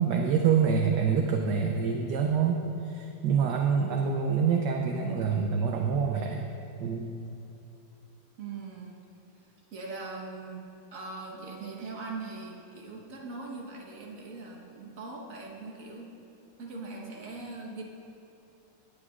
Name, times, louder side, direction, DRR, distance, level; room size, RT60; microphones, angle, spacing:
voice 1, 0.0-6.5 6.8-7.1, right 6 dB, 70° right, 2 dB, 1.1 m, -26 dB
voice 2, 8.4-9.0 9.7-16.1 16.6-17.8, right 3 dB, 45° right, -1 dB, 1.4 m, -41 dB
18.5 x 8.0 x 2.4 m, 2.8 s
omnidirectional pair, 2.3 m